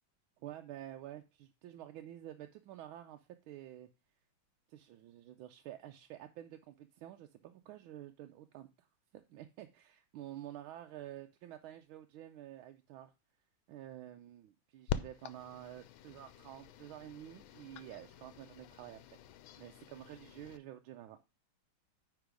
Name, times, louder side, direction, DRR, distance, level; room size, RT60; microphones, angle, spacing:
voice 1, 0.4-3.9 4.7-8.9 9.3-13.1 13.7-21.2, right 12 dB, 90° right, 5 dB, 1.4 m, -50 dB
sound 1, 14.9-20.6, left 9 dB, 90° left, 1.5 m, -45 dB
9.5 x 3.8 x 5.1 m, 0.28 s
omnidirectional pair, 2.2 m